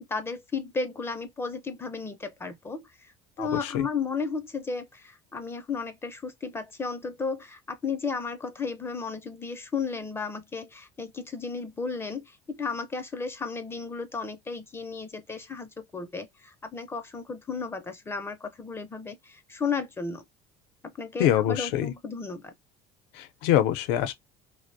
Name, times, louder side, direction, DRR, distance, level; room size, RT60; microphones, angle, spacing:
voice 1, 0.1-3.1 3.4-20.2 20.8-22.5, left 5 dB, 15° left, 0.4 m, -34 dB
voice 2, 3.4-3.9 21.2-21.9 23.1-24.1, left 11 dB, 85° left, 0.5 m, -25 dB
2.4 x 2.0 x 2.5 m
cardioid pair, 125°, 14 cm